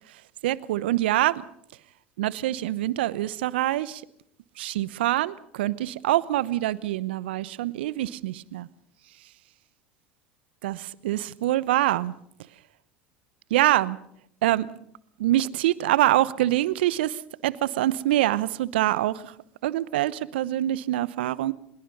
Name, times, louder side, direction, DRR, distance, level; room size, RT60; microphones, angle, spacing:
voice 1, 0.4-1.4 2.2-4.0 4.6-8.7 10.6-12.1 13.5-14.0 14.4-14.7 15.2-19.3 19.6-21.5, right 15 dB, 75° right, 0.9 m, -25 dB
24.5 x 21.5 x 5.5 m
hypercardioid pair, 75°, 6 cm